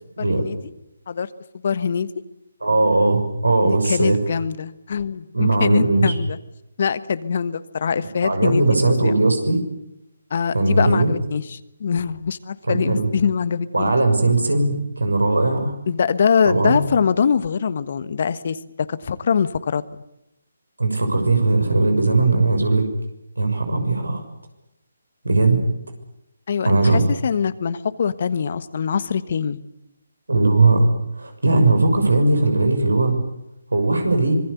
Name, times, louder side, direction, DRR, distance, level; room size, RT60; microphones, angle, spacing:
voice 1, 0.2-0.6 1.1-1.3 1.6-2.1 3.6-6.4 6.8-8.6 9.0-9.1 10.3-13.9 15.9-19.8 26.5-29.6, left 6 dB, 50° left, 14 dB, 1.3 m, -23 dB
voice 2, 2.6-4.2 5.3-6.1 8.2-9.6 10.5-11.1 12.7-13.1 13.7-15.7 16.4-16.8 20.8-22.9 23.4-24.2 25.2-25.6 26.6-27.1 30.3-30.9 31.2-33.2 33.7-34.4, right 2 dB, 85° right, 6 dB, 6.3 m, -18 dB
25.5 x 21.0 x 8.3 m, 0.84 s
figure-of-eight pair, 145°, 0 cm